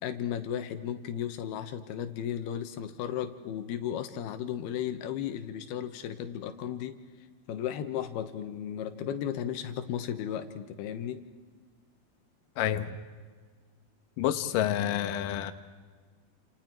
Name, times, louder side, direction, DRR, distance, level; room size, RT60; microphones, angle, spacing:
voice 1, 0.0-7.0 7.5-11.2, left 9 dB, 85° left, 9 dB, 3.2 m, -35 dB
voice 2, 12.6-13.0 14.2-15.5, left 11 dB, 70° left, 9 dB, 2.4 m, -28 dB
29.5 x 28.0 x 4.6 m, 1.5 s
omnidirectional pair, 4.4 m